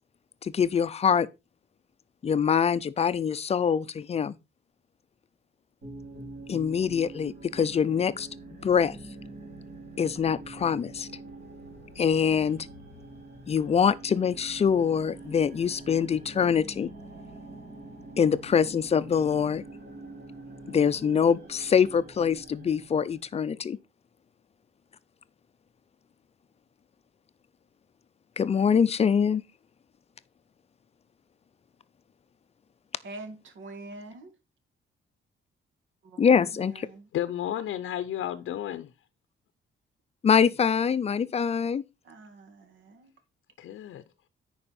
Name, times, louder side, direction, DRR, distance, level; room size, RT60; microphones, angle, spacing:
voice 1, 0.4-1.3 2.2-4.4 6.5-8.3 8.6-9.0 10.0-11.1 12.0-12.7 13.5-16.9 18.2-19.6 20.7-23.8 28.4-29.4 36.2-36.9 40.2-41.8, left 7 dB, 30° left, 0.5 m, -24 dB
sound 1, 5.8-23.3, right 2 dB, 50° right, 3.2 m, -45 dB
voice 2, 33.0-34.3 36.1-36.6 36.9-37.0 42.1-43.1, right 2 dB, 70° right, 1.8 m, -44 dB
voice 3, 37.1-38.9 43.6-44.0, left 11 dB, 75° left, 0.6 m, -32 dB
9.9 x 4.8 x 4.2 m
cardioid pair, 145°, 21 cm